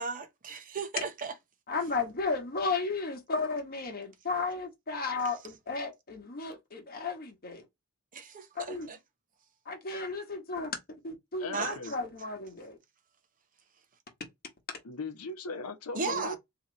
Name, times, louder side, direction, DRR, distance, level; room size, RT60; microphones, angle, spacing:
voice 1, 0.0-1.3 8.1-9.0 11.5-11.8 15.9-16.4, right 4 dB, 40° right, 0.8 m, -35 dB
voice 2, 1.7-7.6 8.5-8.9 9.6-10.7 11.0-12.8 16.0-16.2, left 4 dB, 45° left, 1.3 m, -34 dB
voice 3, 11.4-11.9 14.8-16.4, left 3 dB, 75° left, 0.8 m, -38 dB
2.9 x 2.9 x 3.8 m
head